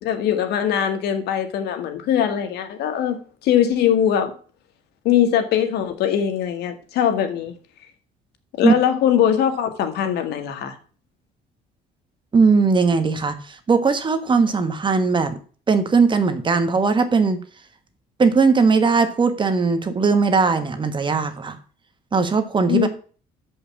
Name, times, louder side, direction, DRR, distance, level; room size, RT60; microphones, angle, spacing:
voice 1, 0.0-4.3 5.0-7.5 8.6-10.7 22.7-22.9, left 9 dB, 75° left, 1.6 m, -21 dB
voice 2, 12.3-15.4 15.7-17.4 18.2-21.6 22.1-22.9, right 4 dB, 30° right, 1.3 m, -19 dB
6.8 x 5.6 x 7.0 m
cardioid pair, 110°, 17 cm